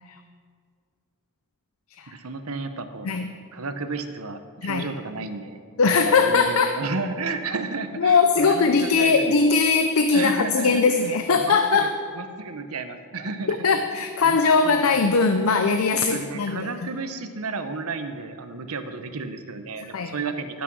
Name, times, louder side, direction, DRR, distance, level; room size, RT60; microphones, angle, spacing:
voice 1, 2.1-3.1 3.5-5.6 6.1-9.6 10.1-11.9 12.1-13.6 14.2-15.0 16.1-20.6, right 3 dB, 80° right, 8 dB, 0.9 m, -33 dB
voice 2, 5.8-6.8 8.0-11.9 13.5-16.7 19.8-20.1, left 4 dB, 70° left, 7 dB, 0.6 m, -20 dB
16.5 x 6.3 x 6.1 m, 2.1 s
head